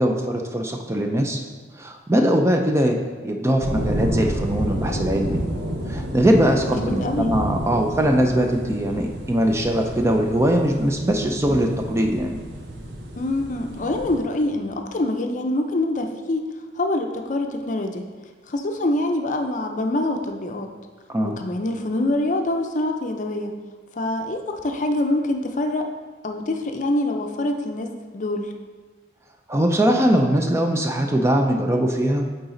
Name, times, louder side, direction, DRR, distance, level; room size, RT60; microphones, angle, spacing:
voice 1, 0.0-1.4 1.8-3.0 3.2-5.4 5.9-12.4 21.1-21.4 29.5-32.3, right 1 dB, 15° right, 3 dB, 0.4 m, -21 dB
sound 1, 3.6-14.2, right 1 dB, 75° right, 0.8 m, -30 dB
voice 2, 6.8-7.3 13.2-16.4 16.7-18.0 18.5-20.7 21.2-23.5 23.9-25.8 26.2-27.9 28.1-28.5, left 1 dB, 45° left, 4 dB, 0.5 m, -25 dB
9.0 x 3.9 x 3.8 m, 1.4 s
head